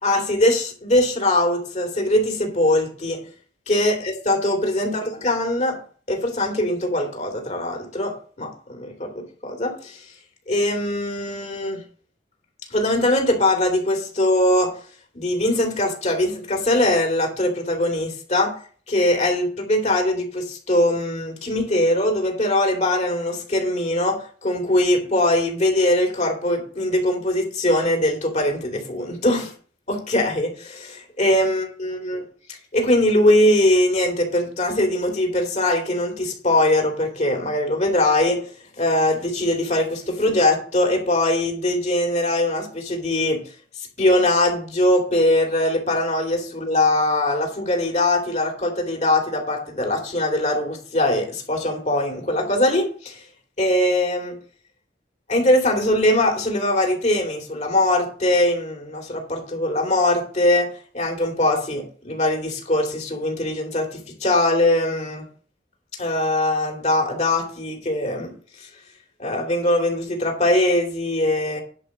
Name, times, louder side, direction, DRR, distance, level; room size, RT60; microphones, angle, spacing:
voice 1, 0.0-3.2 3.7-5.8 6.1-10.0 10.5-11.8 12.7-14.7 15.1-18.5 18.9-29.5 29.9-32.2 32.5-38.4 38.8-43.4 44.0-53.2 53.6-54.4 55.3-60.7 60.9-65.2 66.0-68.3 69.2-71.6, left 1 dB, 40° left, 2 dB, 2.8 m, -21 dB
10.5 x 5.3 x 6.4 m, 0.42 s
head